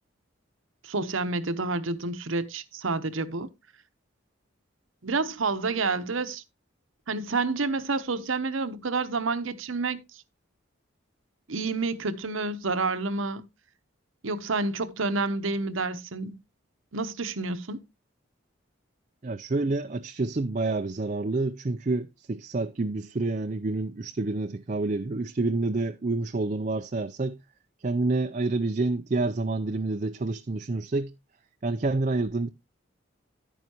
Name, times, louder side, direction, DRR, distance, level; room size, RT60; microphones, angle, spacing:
voice 1, 0.8-3.5 5.0-6.4 7.1-10.0 11.5-13.4 14.2-16.4 16.9-17.8, right 3 dB, 80° right, 0.9 m, -29 dB
voice 2, 19.2-27.4 27.8-31.1 31.6-32.5, right 3 dB, 35° right, 0.5 m, -28 dB
11.0 x 9.3 x 2.9 m
head